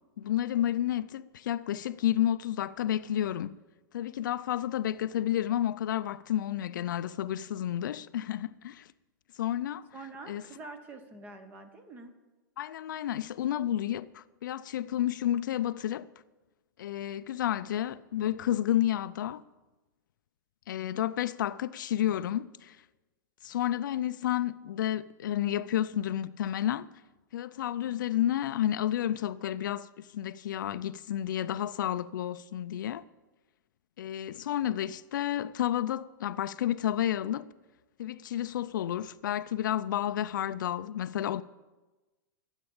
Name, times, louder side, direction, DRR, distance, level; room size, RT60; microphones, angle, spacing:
voice 1, 0.2-3.6 3.9-8.9 9.4-9.9 10.3-10.4 12.6-16.1 16.8-19.4 20.7-22.8 23.4-26.9 27.3-33.0 34.0-37.5 38.0-41.4, left 11 dB, 75° left, 0.5 m, -31 dB
voice 2, 9.9-12.1, right 3 dB, 15° right, 1.2 m, -46 dB
13.0 x 8.2 x 8.7 m
supercardioid pair, 170°, 11 cm